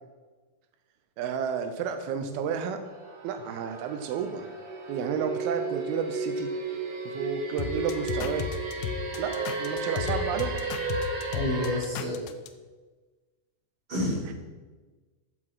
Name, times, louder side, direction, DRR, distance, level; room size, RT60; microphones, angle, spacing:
voice 1, 1.2-2.8 3.2-4.5 4.9-6.5 7.1-8.5 9.2-10.7, right 7 dB, 85° right, 7 dB, 2.6 m, -31 dB
sound 1, 2.8-11.8, right 3 dB, 60° right, 1.2 m, -34 dB
sound 2, 7.6-12.5, left 7 dB, 85° left, 1.7 m, -34 dB
voice 2, 11.3-12.2 13.9-14.3, left 1 dB, 25° right, -6 dB, 3.8 m, -29 dB
15.0 x 6.0 x 4.7 m, 1.3 s
omnidirectional pair, 4.3 m